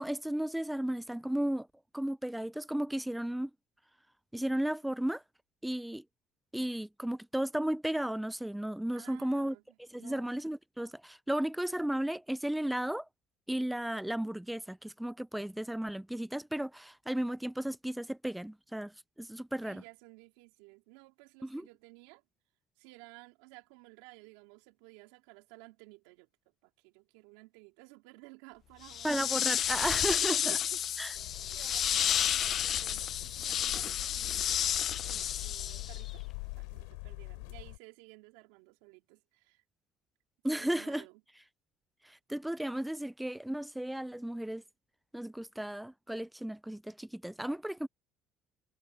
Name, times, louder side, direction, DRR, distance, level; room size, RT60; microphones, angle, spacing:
voice 1, 0.0-1.7 1.9-3.5 4.3-5.2 5.6-6.0 6.5-9.6 9.9-13.1 13.5-19.8 21.5-21.7 29.0-30.6 31.0-31.1 40.4-41.0 42.0-44.6 45.1-47.9, right 1 dB, 5° right, 0.4 m, -34 dB
voice 2, 8.9-10.3 19.6-22.2 22.8-26.3 26.6-29.2 29.6-30.8 31.1-36.2 36.5-39.6 40.5-41.2, right 24 dB, 85° right, 3.9 m, -54 dB
sound 1, 28.9-36.1, left 10 dB, 55° left, 0.7 m, -31 dB
sound 2, 31.1-37.8, left 36 dB, 90° left, 3.8 m, -44 dB
supercardioid pair, 80°, 0 cm